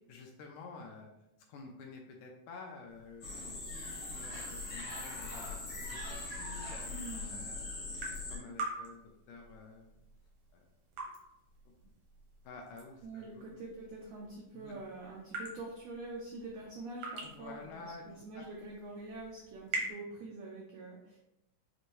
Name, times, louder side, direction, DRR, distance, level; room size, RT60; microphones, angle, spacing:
voice 1, 0.1-1.1 1.5-6.9 7.3-9.0 9.3-9.9 10.5-10.7 11.7-11.9 12.4-13.5 14.2-14.3 14.5-14.8 17.2-18.0 18.4-18.5, left 4 dB, 80° left, 1 dB, 1.9 m, -50 dB
sound 1, 2.9-19.9, right 2 dB, 65° right, 1.4 m, -47 dB
sound 2, 3.2-8.4, left 2 dB, 60° left, 1.3 m, -41 dB
voice 2, 6.9-7.4 13.0-21.2, right 2 dB, 85° right, -2 dB, 1.5 m, -45 dB
6.5 x 2.6 x 3.0 m, 0.87 s
omnidirectional pair, 3.9 m